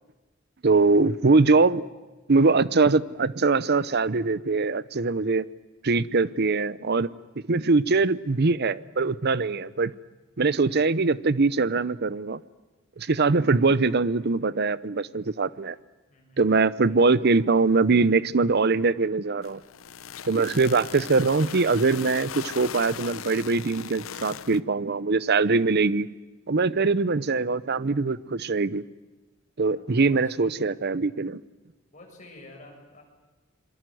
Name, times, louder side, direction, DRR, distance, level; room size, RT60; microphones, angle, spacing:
voice 1, 0.6-1.8 2.3-5.5 5.8-7.1 7.5-9.9 10.4-12.4 13.0-15.8 16.4-19.6 20.3-26.1 26.5-28.8 29.6-31.4, right 3 dB, 55° right, 0.7 m, -22 dB
voice 2, 16.1-16.5 16.9-17.0 29.8-30.6 31.9-33.0, left 2 dB, 40° left, 7.2 m, -50 dB
sound 1, 19.4-24.6, left 8 dB, 80° left, 0.8 m, -39 dB
27.0 x 23.0 x 7.8 m
head